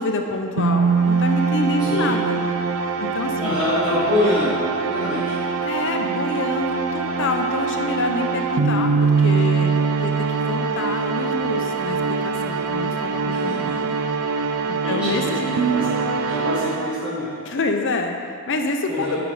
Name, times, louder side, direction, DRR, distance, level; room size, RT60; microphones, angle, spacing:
voice 1, 0.0-2.4 3.0-3.6 5.0-5.1 5.6-13.8 14.9-15.6 17.4-19.2, left 2 dB, 55° left, 4 dB, 0.7 m, -27 dB
sound 1, 0.6-17.3, right 5 dB, 65° right, 0.5 m, -23 dB
voice 2, 3.4-5.4 13.3-13.4 13.6-13.7 14.8-15.9 16.3-17.3 18.9-19.2, left 1 dB, 5° right, -14 dB, 1.9 m, -25 dB
9.6 x 5.1 x 4.8 m, 2.6 s
head